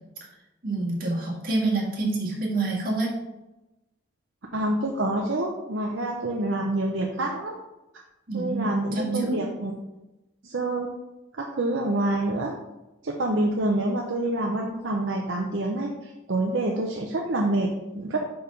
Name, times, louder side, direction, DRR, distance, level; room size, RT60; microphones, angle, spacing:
voice 1, 0.6-3.1 8.3-9.4, right 2 dB, 45° right, -3 dB, 1.7 m, -27 dB
voice 2, 4.5-7.5 8.3-9.7 10.4-10.9 11.4-12.6 13.0-18.2, right 1 dB, 65° right, 0 dB, 0.7 m, -27 dB
5.2 x 4.7 x 5.3 m, 1.0 s
head